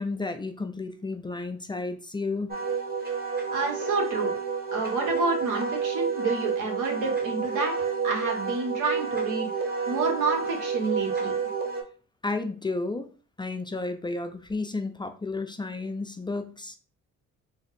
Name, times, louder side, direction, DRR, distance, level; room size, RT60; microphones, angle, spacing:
voice 1, 0.0-2.6 12.2-13.1 13.4-16.8, left 3 dB, 15° left, 7 dB, 0.4 m, -32 dB
Wind instrument woodwind instrument, 2.5-11.8, right 5 dB, 30° right, 0.9 m, -30 dB
voice 2, 3.5-4.3 4.7-9.5 9.9-11.3, right 3 dB, 90° right, 1 dB, 1.2 m, -29 dB
3.3 x 2.1 x 4.0 m, 0.37 s
cardioid pair, 90°, 30 cm